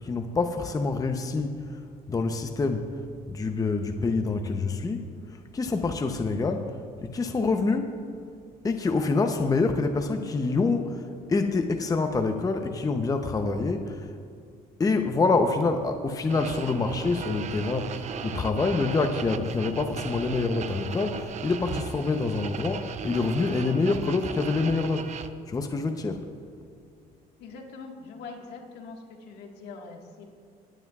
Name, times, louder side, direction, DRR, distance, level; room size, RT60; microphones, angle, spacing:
voice 1, 0.0-1.8 2.1-2.9 3.3-7.9 8.6-14.1 14.8-26.3, left 3 dB, 20° left, 6 dB, 0.7 m, -26 dB
sound 1, 16.3-25.3, right 7 dB, 45° right, 0.6 m, -36 dB
voice 2, 27.4-30.3, left 4 dB, 80° left, 1 dB, 1.7 m, -43 dB
21.5 x 9.6 x 2.4 m, 2.4 s
cardioid pair, 110°, 17 cm